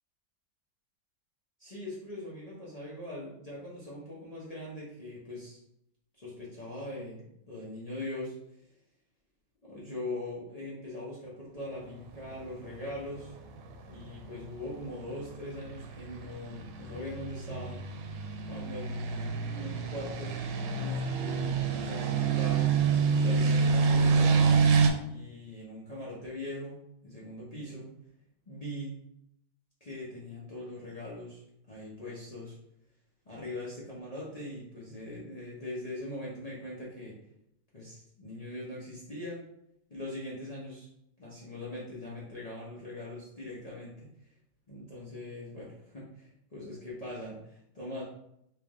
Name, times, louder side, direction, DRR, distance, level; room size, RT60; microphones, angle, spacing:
voice 1, 1.6-5.6 6.2-7.2 7.5-8.3 9.6-13.3 13.9-17.8 18.5-22.7 23.2-24.5 25.0-27.9 28.5-29.0 29.8-32.6 33.3-37.2 37.7-39.4 39.9-40.9 41.2-44.1 44.7-48.0, left 1 dB, 65° left, -7 dB, 0.3 m, -41 dB
sound 1, 12.0-24.9, right 5 dB, 85° right, 1.4 m, -28 dB
3.4 x 3.2 x 3.6 m, 0.77 s
omnidirectional pair, 2.2 m